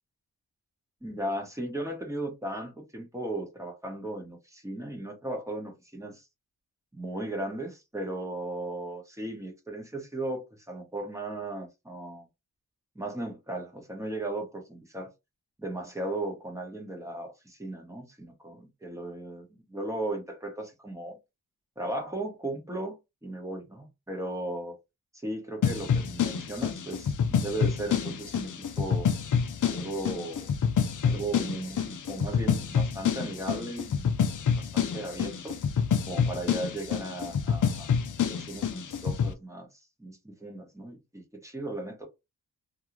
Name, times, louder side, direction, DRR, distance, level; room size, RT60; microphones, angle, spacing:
voice 1, 1.0-6.2 6.9-12.3 12.9-15.1 15.6-21.2 21.8-22.9 23.2-24.8 25.2-28.5 28.8-29.1 29.6-30.5 31.0-34.1 34.7-35.6 36.1-37.9 38.2-39.7 40.0-42.1, right 1 dB, 5° right, 1.0 m, -36 dB
sound 1, 25.6-39.3, left 7 dB, 50° left, 0.6 m, -28 dB
2.5 x 2.3 x 3.0 m
wide cardioid pair, 85°, 40 cm